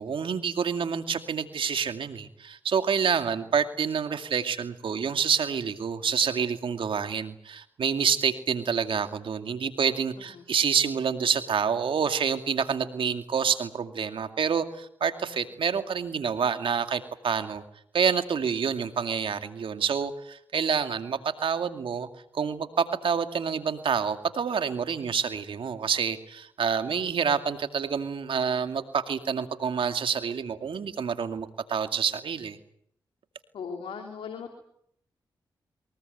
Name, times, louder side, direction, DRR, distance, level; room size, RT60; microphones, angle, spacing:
voice 1, 0.0-17.6 17.9-22.1 22.3-32.6, right 6 dB, 75° right, 8 dB, 2.4 m, -28 dB
voice 2, 26.9-27.2 33.5-34.6, left 6 dB, 90° left, 3 dB, 3.2 m, -39 dB
23.5 x 20.5 x 9.3 m, 0.72 s
supercardioid pair, 45°, 9 cm